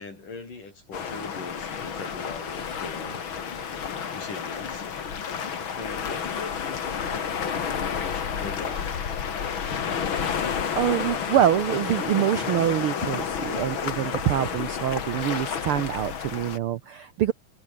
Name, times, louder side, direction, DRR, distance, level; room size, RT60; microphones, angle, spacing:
voice 1, 0.0-3.3 4.1-4.9 5.7-9.0 13.2-13.4, left 3 dB, 80° left, 9.0 m, -41 dB
sound 1, 0.9-16.6, left 7 dB, 45° left, 2.4 m, -30 dB
sound 2, 1.1-9.1, right 5 dB, 60° right, 5.8 m, -54 dB
voice 2, 10.8-17.3, right 11 dB, 90° right, 1.2 m, -25 dB
omnidirectional pair, 3.7 m